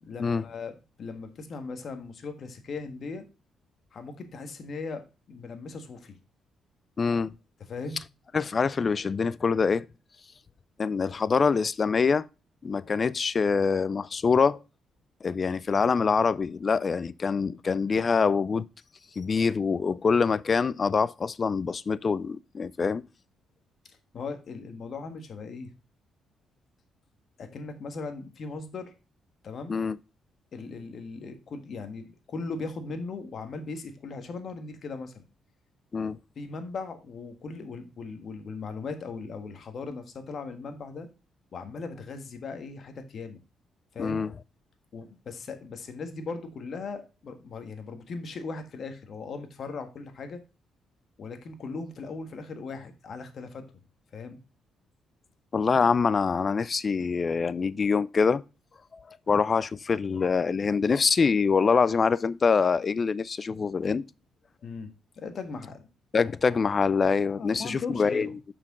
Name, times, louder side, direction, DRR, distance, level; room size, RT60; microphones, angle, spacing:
voice 1, 0.0-3.2 3.9-5.0 5.3-6.2 7.7-8.0 24.1-25.7 27.4-28.9 29.4-29.8 30.5-35.2 36.4-41.1 41.5-43.4 43.9-44.3 44.9-50.4 51.2-53.6 54.1-54.4 64.6-65.8 67.3-68.3, left 4 dB, 55° left, 1.4 m, -38 dB
voice 2, 7.0-7.3 8.3-9.9 10.8-12.2 12.6-14.6 15.2-18.7 19.2-23.0 29.7-30.0 35.9-36.2 44.0-44.3 55.5-58.4 59.3-64.0 66.1-68.3, left 5 dB, 40° left, 0.4 m, -25 dB
6.8 x 5.9 x 3.6 m
cardioid pair, 90°, 0 cm